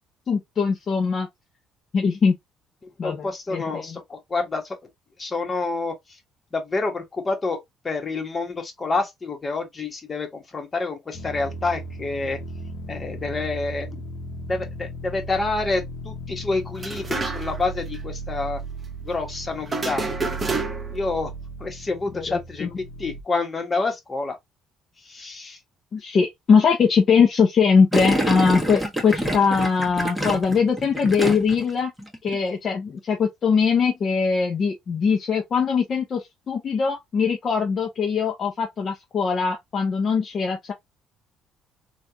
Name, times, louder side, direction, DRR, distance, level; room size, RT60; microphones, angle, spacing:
voice 1, 0.3-1.3 1.9-2.3 3.0-4.0 22.1-22.7 25.9-31.9 32.2-40.7, left 5 dB, 50° left, 0.8 m, -21 dB
voice 2, 3.0-4.8 5.2-5.9 6.5-7.6 7.8-12.4 12.9-14.0 14.5-18.6 19.0-20.0 20.9-21.3 21.6-22.7 23.0-24.4 25.0-25.6, left 3 dB, 30° left, 1.4 m, -28 dB
sound 1, 11.1-23.2, right 2 dB, 75° left, 1.1 m, -36 dB
sound 2, 16.8-17.7 17.9-18.0 19.7-21.0, right 3 dB, 30° right, 0.9 m, -28 dB
Gurgling, 27.9-31.7 32.0-32.4, right 1 dB, ahead, 1.5 m, -26 dB
3.4 x 2.6 x 2.8 m
supercardioid pair, 65°, 0 cm